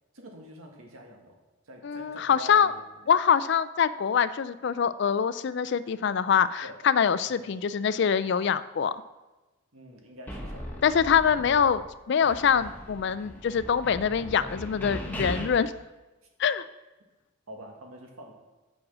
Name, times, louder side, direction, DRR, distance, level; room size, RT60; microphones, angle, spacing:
voice 1, 0.1-1.4 1.6-3.1 6.6-6.8 7.2-7.7 9.7-10.8 11.3-11.5 17.5-18.3, right 1 dB, 85° right, 1 dB, 1.8 m, -47 dB
voice 2, 1.8-2.7 3.1-9.0 10.8-11.8 12.1-15.7 16.4-16.7, left 7 dB, 55° left, 15 dB, 0.3 m, -24 dB
sound 1, 10.3-11.9 12.2-15.5, equal, 10° left, 1.2 m, -38 dB
8.7 x 6.3 x 6.1 m, 1.1 s
head